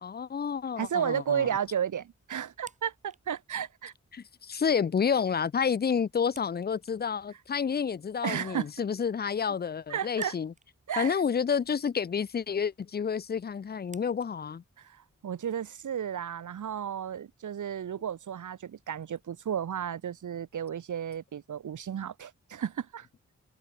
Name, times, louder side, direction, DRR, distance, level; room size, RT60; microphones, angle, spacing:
voice 1, 0.0-1.5 4.1-10.5 11.0-14.6, left 6 dB, 35° left, 0.5 m, -29 dB
sound 1, 0.8-16.2, right 2 dB, 25° right, 8.0 m, -61 dB
voice 2, 0.8-3.9 8.2-8.9 9.9-10.3 10.9-11.2 14.8-23.1, right 9 dB, 85° right, 1.3 m, -33 dB
open air
cardioid pair, 70°, 29 cm